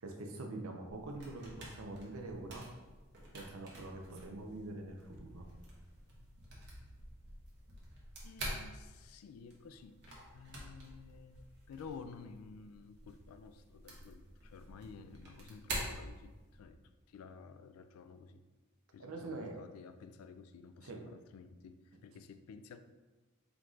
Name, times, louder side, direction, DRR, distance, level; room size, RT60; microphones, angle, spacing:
voice 1, 0.0-2.6 3.3-5.5 19.0-19.6 20.8-21.0, right 2 dB, 70° right, 2 dB, 0.6 m, -44 dB
sound 1, 0.8-16.7, right 1 dB, 55° right, 1.0 m, -48 dB
voice 2, 8.2-16.8 17.1-18.4 18.9-22.8, left 5 dB, 80° left, 10 dB, 0.3 m, -53 dB
4.6 x 2.4 x 3.9 m, 1.2 s
head